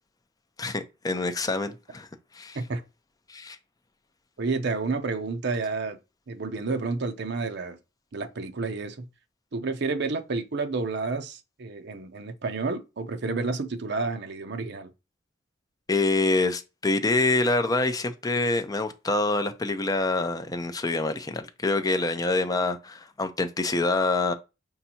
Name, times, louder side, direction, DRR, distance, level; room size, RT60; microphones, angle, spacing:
voice 1, 0.6-2.1 2.3-2.6 3.3-3.6 15.9-24.3, left 2 dB, 20° left, 0.5 m, -26 dB
voice 2, 4.4-6.0 6.3-7.8 8.1-9.1 9.5-14.9, right 3 dB, 60° right, 0.6 m, -30 dB
5.4 x 2.6 x 2.8 m
head